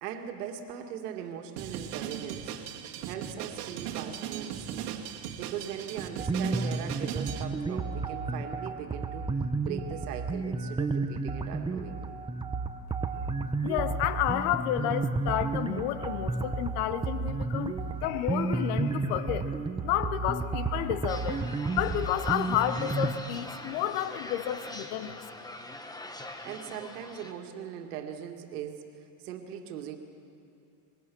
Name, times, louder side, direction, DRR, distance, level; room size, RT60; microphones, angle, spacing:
voice 1, 0.0-2.6 3.1-5.0 5.4-9.3 9.6-12.2 26.4-30.0, right 9 dB, 85° right, 5 dB, 2.2 m, -40 dB
Drum kit, 1.6-7.4, right 9 dB, 65° right, 2.2 m, -38 dB
sound 1, 6.2-23.1, right 3 dB, 10° right, 0.9 m, -32 dB
voice 2, 13.6-25.2, left 11 dB, 70° left, 12 dB, 1.3 m, -31 dB
sound 2, 21.1-27.3, left 2 dB, 10° left, 1.3 m, -43 dB
24.5 x 21.5 x 6.2 m, 2.8 s
supercardioid pair, 125°, 45 cm